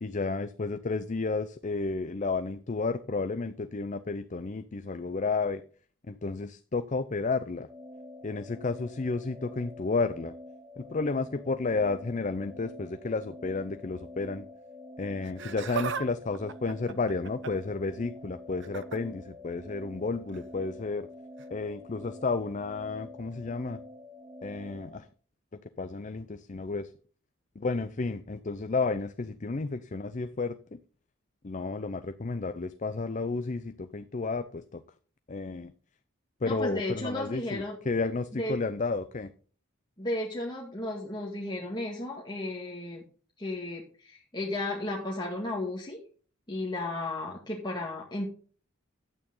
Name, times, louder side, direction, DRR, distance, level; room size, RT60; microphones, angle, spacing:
voice 1, 0.0-5.6 6.1-7.7 8.2-10.3 10.8-14.5 15.0-21.1 21.5-23.8 24.4-25.0 25.8-26.9 27.6-30.8 31.4-34.8 35.3-35.7 36.4-39.3, left 3 dB, 40° left, 11 dB, 0.5 m, -32 dB
sound 1, 7.7-25.0, left 1 dB, 15° right, 1.6 m, -47 dB
Laughter, 15.2-16.1 16.3-17.7 18.6-19.0 20.3-20.5 21.4-21.5, right 5 dB, 60° right, 0.8 m, -36 dB
voice 2, 36.4-37.8 38.3-38.6 40.0-43.0 43.4-46.0 46.5-48.3, left 1 dB, 20° left, -3 dB, 2.0 m, -34 dB
11.0 x 8.9 x 3.8 m, 0.41 s
head